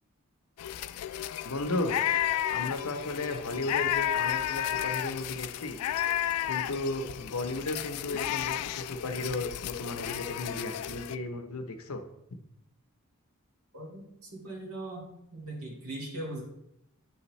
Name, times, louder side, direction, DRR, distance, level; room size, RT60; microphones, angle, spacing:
sound 1, 0.6-11.2, left 11 dB, 85° left, 0.3 m, -32 dB
voice 1, 1.4-2.0 2.5-5.8 6.5-12.0, left 2 dB, 70° left, 7 dB, 0.8 m, -34 dB
voice 2, 13.7-16.4, right 1 dB, 80° right, -3 dB, 2.4 m, -40 dB
8.8 x 5.6 x 3.2 m, 0.81 s
head